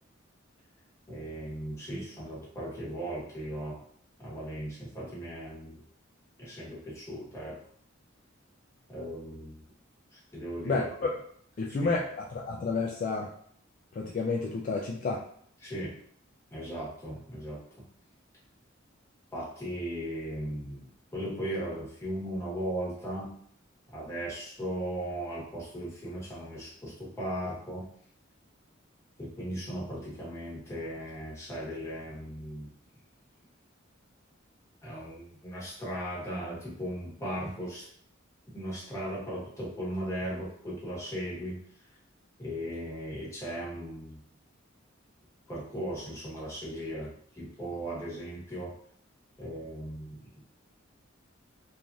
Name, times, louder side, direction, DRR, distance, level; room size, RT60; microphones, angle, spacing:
voice 1, 1.1-3.8 4.2-5.8 6.4-7.6 8.9-9.6 10.1-11.1 11.8-11.9 15.6-16.0 16.5-17.8 19.3-23.3 23.9-27.9 29.2-32.7 34.8-37.9 38.5-41.6 42.4-44.2 45.5-48.8 49.4-50.2, right 1 dB, 15° left, -7 dB, 1.0 m, -37 dB
voice 2, 11.6-13.3 14.0-15.2, left 4 dB, 40° left, -2 dB, 0.3 m, -30 dB
3.1 x 2.5 x 2.3 m, 0.62 s
head